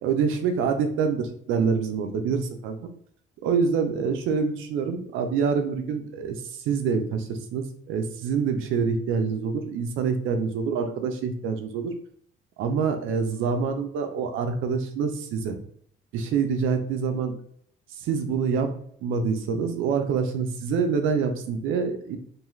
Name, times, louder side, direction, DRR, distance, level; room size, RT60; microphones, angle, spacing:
voice 1, 0.0-2.8 3.4-6.4 6.6-11.9 12.6-15.6 16.1-17.3 18.0-18.7 19.0-22.2, right 5 dB, 90° right, 6 dB, 0.5 m, -26 dB
2.6 x 2.3 x 3.1 m, 0.64 s
cardioid pair, 90°, 20 cm